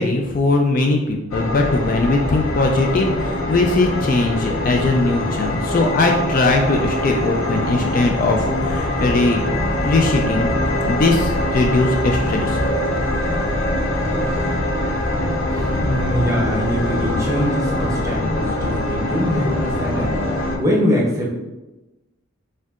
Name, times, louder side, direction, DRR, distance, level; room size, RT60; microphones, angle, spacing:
voice 1, 0.0-9.4 9.8-10.5 10.8-12.6, left 2 dB, 40° left, 2 dB, 0.3 m, -19 dB
sound 1, 1.3-20.6, left 1 dB, 80° left, 0.6 m, -23 dB
voice 2, 15.5-21.3, equal, 15° right, -3 dB, 0.7 m, -23 dB
4.4 x 3.6 x 2.4 m, 1.0 s
head